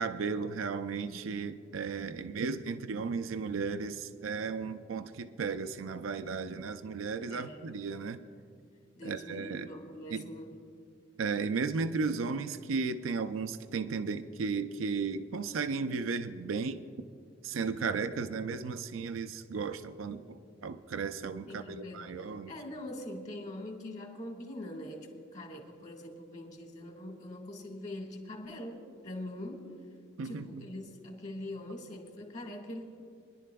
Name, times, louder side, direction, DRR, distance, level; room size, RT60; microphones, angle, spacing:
voice 1, 0.0-8.2 9.0-9.7 10.1-10.2 11.2-16.8 17.4-22.5 30.2-30.6, right 5 dB, 90° right, 11 dB, 0.4 m, -35 dB
voice 2, 7.3-7.6 8.9-10.5 21.5-29.7 30.2-32.8, left 1 dB, 35° left, 2 dB, 1.7 m, -43 dB
24.5 x 11.0 x 2.3 m, 2.3 s
head